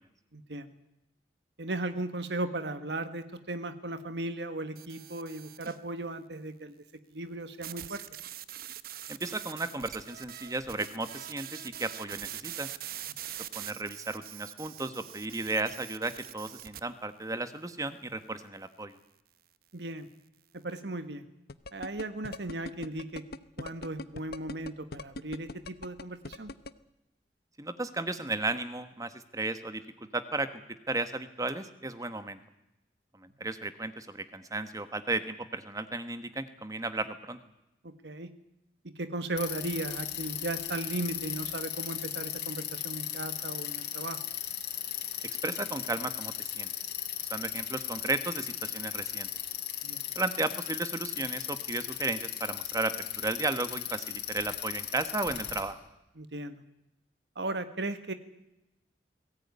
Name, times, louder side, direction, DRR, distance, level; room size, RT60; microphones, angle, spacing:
voice 1, 0.3-0.7 1.6-6.7 7.1-8.0 19.7-20.1 20.5-21.3 21.7-23.2 23.6-26.5 37.8-38.3 38.8-44.2 49.8-50.0 56.2-56.6 57.3-58.1, right 2 dB, 75° right, 10 dB, 1.5 m, -36 dB
sound 1, 4.8-5.8 7.6-16.8, right 11 dB, 55° right, 0.9 m, -43 dB
voice 2, 9.1-12.7 13.5-18.9 27.6-29.8 30.1-30.5 30.9-32.4 33.2-37.4 45.4-46.7 47.3-49.3 50.1-55.8, right 2 dB, 20° right, 11 dB, 1.3 m, -34 dB
sound 2, 21.5-26.7, left 2 dB, 60° left, 0.9 m, -40 dB
Bicycle, 39.4-55.6, left 11 dB, 75° left, 4.5 m, -37 dB
21.0 x 18.0 x 9.6 m, 0.91 s
head